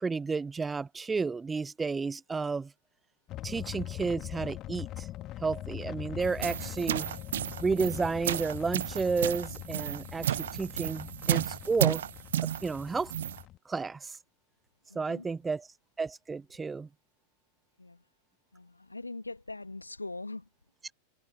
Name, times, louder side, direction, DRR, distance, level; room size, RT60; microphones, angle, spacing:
voice 1, 0.0-2.7 3.4-5.1 5.4-7.1 7.6-12.0 12.4-13.1 13.7-14.2 14.9-15.7 16.0-16.9 20.8-20.9, right 4 dB, 15° right, 0.6 m, -32 dB
sound 1, 3.3-13.6, left 14 dB, 35° left, 2.3 m, -42 dB
sound 2, 6.2-13.4, right 11 dB, 60° right, 0.9 m, -32 dB
voice 2, 18.5-20.5, left 2 dB, 80° left, 2.4 m, -41 dB
figure-of-eight pair, 90°, 0 cm